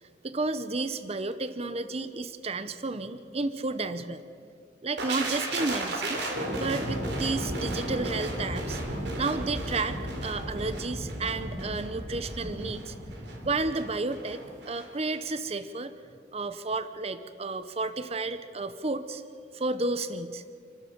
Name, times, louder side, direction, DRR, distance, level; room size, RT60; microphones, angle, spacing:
voice 1, 0.2-4.2 4.8-8.8 9.2-10.0 10.2-13.0 13.4-14.4 14.7-15.9 16.3-19.2 19.5-20.4, right 3 dB, 35° right, 12 dB, 0.8 m, -32 dB
sound 1, 5.0-14.9 15.1-15.3, right 1 dB, 70° right, 3.5 m, -34 dB
28.5 x 13.0 x 7.2 m, 2.2 s
head